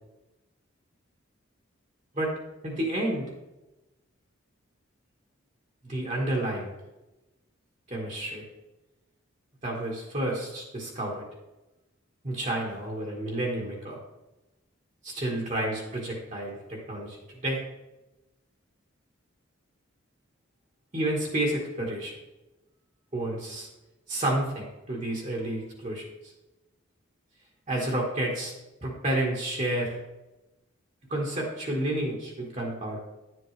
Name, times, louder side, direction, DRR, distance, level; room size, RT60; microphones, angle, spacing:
voice 1, 2.6-3.3 5.9-6.7 7.9-8.4 9.6-11.2 12.2-14.0 15.0-17.6 20.9-22.1 23.1-23.7 24.1-26.3 27.7-28.5 28.8-29.9 31.1-33.0, right 1 dB, 35° right, -2 dB, 1.5 m, -30 dB
11.0 x 7.7 x 3.3 m, 1.0 s
head